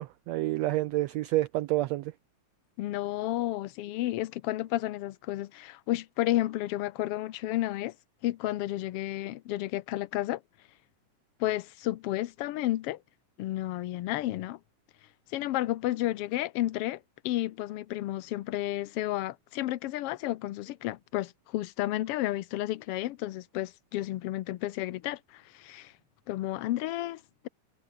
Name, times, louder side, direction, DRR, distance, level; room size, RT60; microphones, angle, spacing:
voice 1, 0.0-2.1, right 16 dB, 80° right, 1.5 m, -29 dB
voice 2, 2.8-7.9 8.2-10.4 11.4-13.0 13.4-14.6 15.3-25.9 26.3-27.5, left 15 dB, 80° left, 1.3 m, -32 dB
omnidirectional pair, 3.6 m